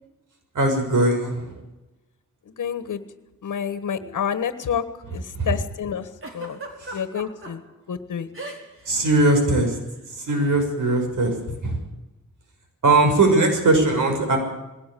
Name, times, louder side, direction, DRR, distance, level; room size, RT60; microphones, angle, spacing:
voice 1, 0.5-1.6 5.3-5.5 6.8-7.0 8.9-9.8 10.1-11.3 11.6-11.8 12.8-14.4, right 2 dB, 85° right, 4 dB, 6.3 m, -20 dB
voice 2, 2.6-3.0 3.4-4.8 5.1-6.1 6.3-6.6 6.9-7.6 7.9-8.3, left 8 dB, 80° left, 10 dB, 1.4 m, -28 dB
Giggle, 6.2-7.5 8.3-8.9 9.1-9.3 10.3-10.5, right 2 dB, 45° right, 4.8 m, -36 dB
20.5 x 17.5 x 8.5 m, 1.0 s
wide cardioid pair, 100°, 30 cm